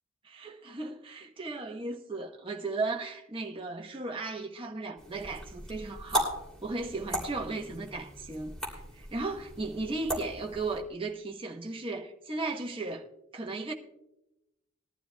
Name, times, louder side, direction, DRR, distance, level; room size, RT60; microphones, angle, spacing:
voice 1, 0.2-13.1 13.3-13.7, right 3 dB, 25° right, 1.0 m, -36 dB
sound 1, 5.0-10.8, right 1 dB, 5° left, 2.7 m, -37 dB
20.5 x 12.0 x 2.2 m
head